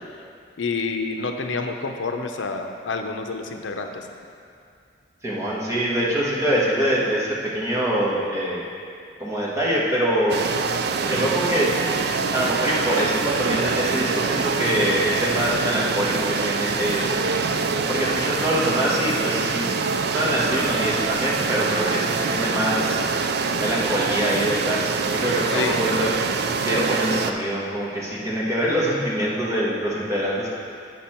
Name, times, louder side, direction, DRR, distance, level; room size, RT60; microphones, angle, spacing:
voice 1, 0.6-4.0 25.5-25.8, left 4 dB, 80° left, 5 dB, 0.6 m, -28 dB
voice 2, 5.2-8.6 9.2-10.5 11.1-11.7 12.3-17.1 17.7-19.7 20.1-23.0 23.6-26.2 26.6-30.5, equal, 15° right, -6 dB, 1.4 m, -24 dB
sound 1, 10.3-27.3, right 5 dB, 60° right, 0.4 m, -25 dB
8.5 x 6.1 x 4.4 m, 2.3 s
head